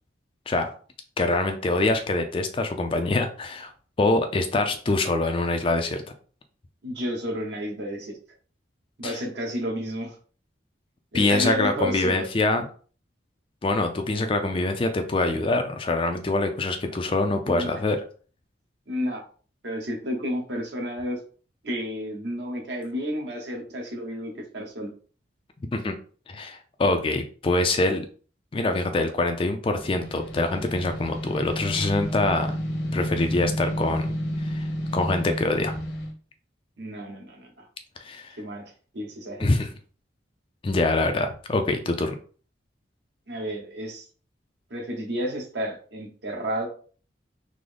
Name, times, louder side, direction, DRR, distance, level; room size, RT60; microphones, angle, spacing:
voice 1, 1.2-3.7 4.0-6.0 9.0-9.2 11.1-12.7 13.6-18.0 25.7-25.9 26.3-28.1 28.5-32.5 32.9-34.1 34.4-34.7 34.9-35.8 38.0-38.3 39.4-39.7 40.6-42.2, left 2 dB, 30° left, 7 dB, 0.3 m, -24 dB
voice 2, 6.8-8.2 9.0-10.1 11.1-12.2 17.4-17.8 18.9-19.2 19.6-21.2 21.6-24.9 36.8-37.7 38.4-38.6 38.9-39.5 43.3-44.1 44.7-46.7, equal, 65° right, 1 dB, 1.0 m, -31 dB
sound 1, 29.8-36.1, equal, 65° left, 0.9 m, -31 dB
3.7 x 2.0 x 3.3 m, 0.41 s
head